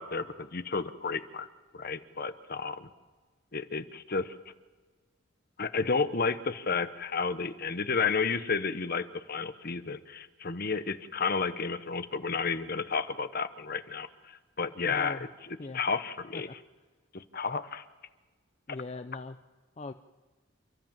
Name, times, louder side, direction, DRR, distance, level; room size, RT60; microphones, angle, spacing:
voice 1, 0.0-1.5 1.7-2.9 3.5-4.5 5.6-16.5 17.1-17.8, left 5 dB, 50° left, 11 dB, 1.0 m, -32 dB
voice 2, 14.8-15.3 15.6-15.8 16.3-16.6 18.7-19.4 19.8-19.9, left 3 dB, 30° left, 8 dB, 0.6 m, -40 dB
29.0 x 13.5 x 7.4 m, 1.3 s
head